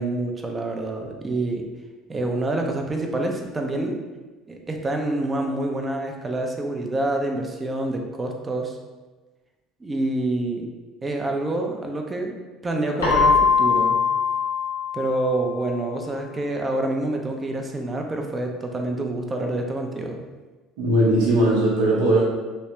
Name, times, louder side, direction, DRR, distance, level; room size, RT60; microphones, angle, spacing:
voice 1, 0.0-1.6 2.1-4.0 4.5-8.8 9.8-10.7 11.0-12.4 12.6-14.0 14.9-20.2, right 2 dB, 25° right, 2 dB, 0.6 m, -27 dB
Keyboard (musical), 13.0-15.7, left 5 dB, 80° left, 0.8 m, -21 dB
voice 2, 20.8-22.2, right 1 dB, 70° right, -6 dB, 0.9 m, -19 dB
3.2 x 3.1 x 2.9 m, 1.2 s
hypercardioid pair, 65°, 0 cm